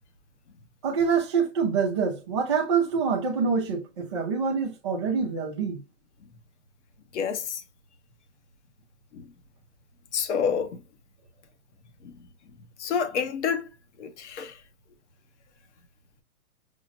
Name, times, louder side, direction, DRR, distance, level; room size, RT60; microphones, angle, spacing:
voice 1, 0.8-5.8, right 6 dB, 20° right, 0.5 m, -26 dB
voice 2, 7.1-7.6 9.1-9.2 10.1-10.8 12.0-12.1 12.8-13.6 14.0-14.5, left 6 dB, 50° left, 0.8 m, -28 dB
6.1 x 2.1 x 2.5 m
hypercardioid pair, 160°, 46 cm